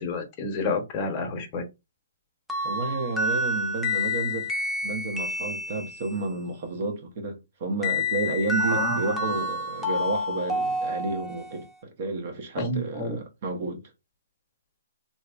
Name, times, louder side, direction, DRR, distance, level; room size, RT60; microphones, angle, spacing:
voice 1, 0.0-1.6 8.6-9.2 12.6-13.2, left 3 dB, 25° left, 0.9 m, -29 dB
sound 1, 2.5-6.2 7.8-11.6, left 1 dB, ahead, 0.6 m, -29 dB
voice 2, 2.6-4.5 4.8-13.9, right 3 dB, 45° right, 1.0 m, -31 dB
3.3 x 2.8 x 2.4 m
hypercardioid pair, 145°, 0 cm